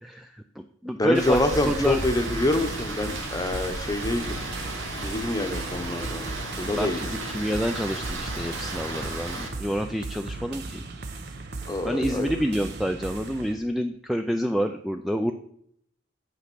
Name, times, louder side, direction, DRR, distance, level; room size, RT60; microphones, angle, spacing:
voice 1, 0.0-2.0 6.7-10.9 11.9-15.3, equal, ahead, 6 dB, 0.3 m, -28 dB
voice 2, 1.0-4.4 5.0-6.3 6.6-7.0 11.7-12.3, left 1 dB, 20° left, 7 dB, 0.9 m, -26 dB
Rain, 1.1-9.5, right 2 dB, 70° right, 2.2 m, -34 dB
sound 1, 1.5-13.5, right 3 dB, 55° right, 0.9 m, -37 dB
7.8 x 5.8 x 6.1 m, 0.68 s
head